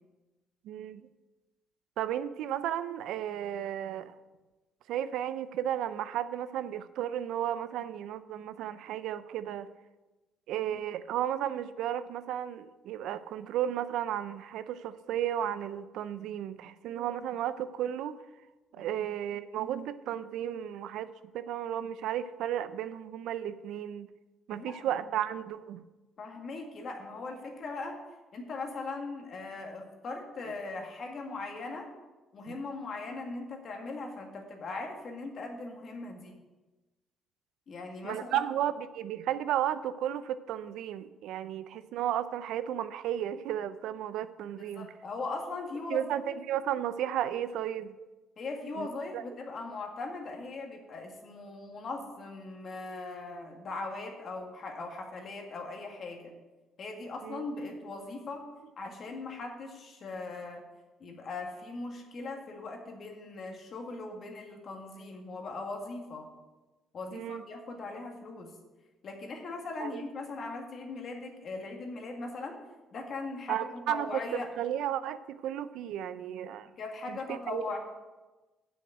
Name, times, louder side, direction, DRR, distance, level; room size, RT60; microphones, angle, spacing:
voice 1, 0.6-1.0 2.0-4.1 4.9-9.7 10.5-18.2 18.7-24.1 24.5-25.8 32.5-32.6 38.0-44.9 45.9-47.9 48.7-48.9 49.1-49.2 57.2-57.4 67.1-67.4 69.8-70.0 73.5-74.1 74.3-76.7 77.1-77.6, right 10 dB, 80° right, 13 dB, 0.5 m, -34 dB
voice 2, 24.5-25.0 26.2-28.0 28.3-31.9 32.3-36.4 37.7-38.5 44.6-46.4 48.4-56.3 56.8-58.4 58.8-60.6 61.0-66.3 66.9-68.5 69.0-72.6 72.9-74.5 76.8-77.8, left 3 dB, 45° left, 2 dB, 1.8 m, -39 dB
7.8 x 6.4 x 7.9 m, 1.2 s
cardioid pair, 135°, 0 cm